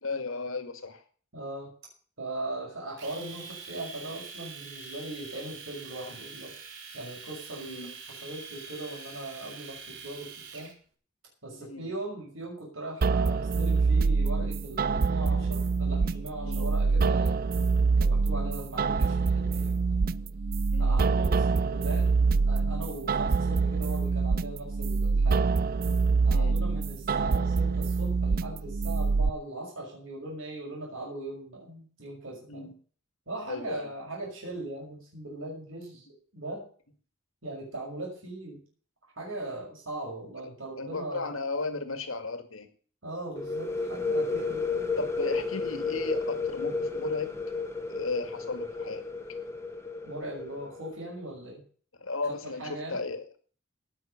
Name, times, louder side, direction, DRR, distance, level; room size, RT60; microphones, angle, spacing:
voice 1, 0.0-1.0 7.6-7.9 11.5-11.9 16.4-16.7 20.7-21.0 26.3-26.6 32.5-32.7 33.5-33.9 40.4-42.7 45.0-47.4 47.9-49.0 52.0-53.4, left 3 dB, 90° left, 9 dB, 2.2 m, -35 dB
voice 2, 1.3-1.7 2.2-6.5 6.9-10.7 11.4-17.4 18.0-20.0 20.8-22.1 22.5-25.6 26.2-32.7 33.3-36.1 36.3-36.7 37.4-38.6 39.2-41.4 43.0-44.9 50.0-51.6 52.4-53.0, right 2 dB, 80° right, -3 dB, 6.1 m, -39 dB
Domestic sounds home sounds, 3.0-10.7, right 5 dB, 65° right, 3.6 m, -44 dB
sound 1, 13.0-29.3, right 4 dB, 45° right, 0.5 m, -25 dB
sound 2, 43.4-51.0, left 4 dB, 15° left, 1.5 m, -32 dB
18.0 x 6.6 x 6.6 m, 0.43 s
head